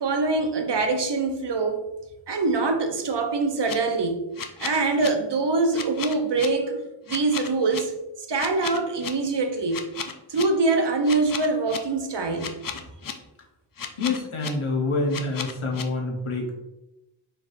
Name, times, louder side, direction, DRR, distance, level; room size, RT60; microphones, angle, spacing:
voice 1, 0.0-1.8 2.3-4.2 4.6-6.8 7.1-7.9 8.3-9.8 10.3-12.6, right 3 dB, 60° right, 6 dB, 0.6 m, -24 dB
sound 1, 3.4-3.7 4.4-5.1 5.7-6.5 7.1-7.8 8.4-9.1 9.7-10.4 11.1-11.8 12.4-13.1 13.8-14.5 15.1-15.8, left 7 dB, 45° left, 0.5 m, -33 dB
voice 2, 14.0-16.5, left 3 dB, 80° left, -1 dB, 1.0 m, -27 dB
4.8 x 3.2 x 2.6 m, 0.96 s
wide cardioid pair, 50°, 49 cm